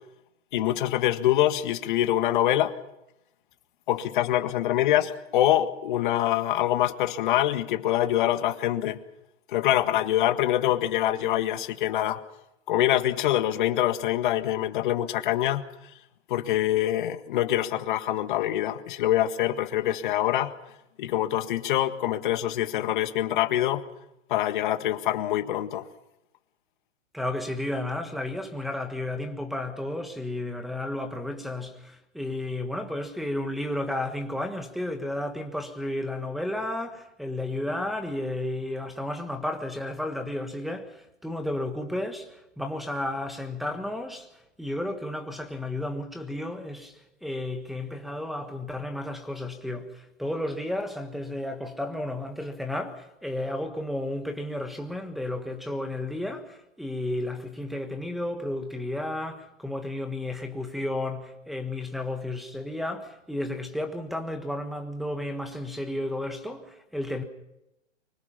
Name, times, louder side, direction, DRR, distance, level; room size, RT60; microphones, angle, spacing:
voice 1, 0.5-2.7 3.9-9.0 9.5-12.2 12.7-15.6 16.3-20.5 21.0-23.8 24.3-25.9, left 13 dB, 40° left, 1.8 m, -25 dB
voice 2, 27.1-44.3 44.6-67.2, left 1 dB, ahead, 1.4 m, -32 dB
25.0 x 23.5 x 5.8 m
hypercardioid pair, 150°, 38 cm